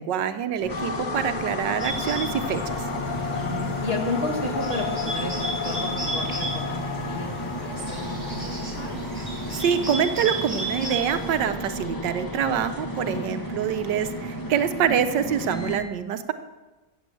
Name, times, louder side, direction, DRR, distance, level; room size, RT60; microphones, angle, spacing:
voice 1, 0.0-2.8 9.5-16.3, right 8 dB, 85° right, 9 dB, 1.5 m, -26 dB
sound 1, 0.6-15.8, right 1 dB, 10° left, 1.5 m, -34 dB
sound 2, 0.7-13.3, left 5 dB, 65° left, 0.4 m, -34 dB
Bird, 1.8-11.5, right 1 dB, 20° right, 3.2 m, -34 dB
voice 2, 3.4-9.0 13.5-13.7, left 2 dB, 35° left, 1 dB, 2.0 m, -33 dB
15.0 x 7.9 x 7.7 m, 1.2 s
omnidirectional pair, 1.9 m